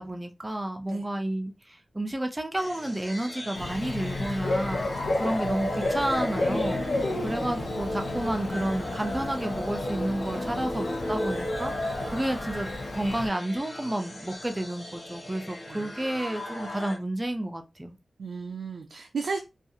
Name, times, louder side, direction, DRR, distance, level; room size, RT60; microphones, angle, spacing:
voice 1, 0.0-6.8 7.2-11.7 12.1-18.0, right 1 dB, 20° right, 0.5 m, -31 dB
sound 1, 2.6-17.0, left 1 dB, 35° left, 0.9 m, -35 dB
Bird / Cricket, 3.5-13.3, left 2 dB, 70° left, 0.7 m, -33 dB
voice 2, 7.0-7.7 12.0-12.3 15.7-15.9 18.2-19.4, right 4 dB, 85° right, 0.4 m, -36 dB
2.5 x 2.4 x 2.7 m
wide cardioid pair, 100°, 0 cm